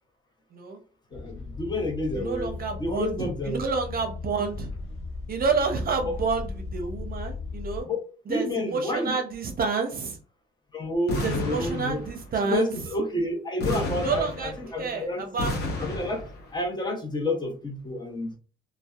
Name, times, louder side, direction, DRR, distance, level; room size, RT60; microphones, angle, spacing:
sound 1, 1.1-7.8, left 4 dB, 90° left, 0.6 m, -37 dB
voice 1, 1.1-2.5 2.8-3.6 6.0-6.1 7.9-8.0 8.3-9.2 10.7-12.0 12.4-15.2 15.8-16.2 16.5-18.3, left 2 dB, 20° left, 3 dB, 0.8 m, -29 dB
voice 2, 2.1-4.7 5.3-7.9 8.3-10.2 11.2-12.7 13.6-15.6, right 4 dB, 50° right, 4 dB, 0.7 m, -29 dB
sound 2, 11.1-12.3 13.6-14.9 15.4-16.5, left 1 dB, 55° left, 0.9 m, -31 dB
2.6 x 2.1 x 2.3 m, 0.38 s
cardioid pair, 90°, 20 cm